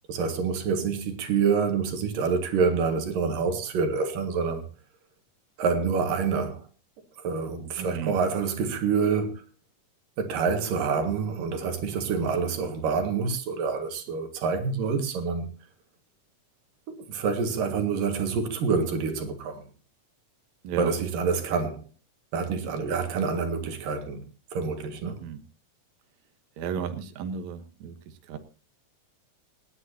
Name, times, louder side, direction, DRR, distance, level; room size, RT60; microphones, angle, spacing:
voice 1, 0.1-4.6 5.6-6.6 7.2-9.4 10.2-15.5 16.9-19.6 20.8-21.9 22.3-24.2 24.5-25.2, right 5 dB, 80° right, 3.4 m, -27 dB
voice 2, 7.8-8.2 20.6-20.9 25.1-25.4 26.6-28.4, right 7 dB, 65° right, 2.3 m, -34 dB
28.5 x 10.0 x 2.8 m
omnidirectional pair, 3.9 m